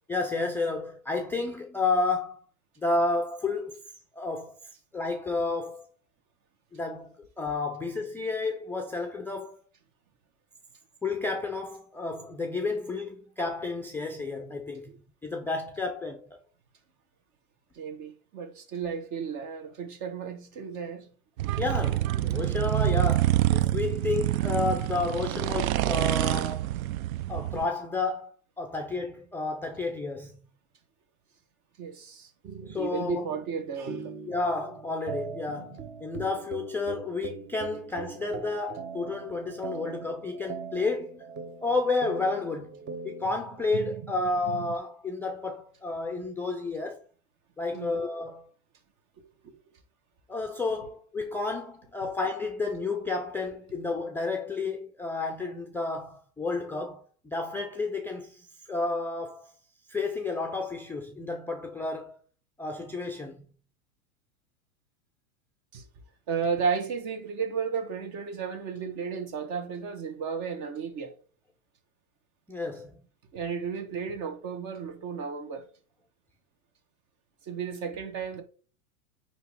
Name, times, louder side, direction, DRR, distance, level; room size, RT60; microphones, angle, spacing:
voice 1, 0.1-2.4 2.8-3.8 4.1-4.6 4.9-5.9 6.7-9.6 11.0-14.9 15.2-16.4 21.6-26.7 27.3-30.4 32.6-33.2 34.3-41.2 41.6-42.7 43.0-47.0 47.6-48.5 50.3-59.5 59.9-62.2 62.6-63.4 72.5-73.0, left 3 dB, 5° left, 0.4 m, -31 dB
voice 2, 17.7-21.1 31.8-32.3 32.8-34.1 47.7-48.0 49.4-49.5 65.7-65.8 66.3-71.1 73.3-75.6 77.5-78.4, right 6 dB, 40° right, 1.5 m, -33 dB
sound 1, 21.4-27.7, right 14 dB, 70° right, 0.5 m, -26 dB
sound 2, 32.4-44.8, right 6 dB, 25° right, 0.9 m, -41 dB
9.1 x 3.1 x 3.6 m
hypercardioid pair, 115°, 43 cm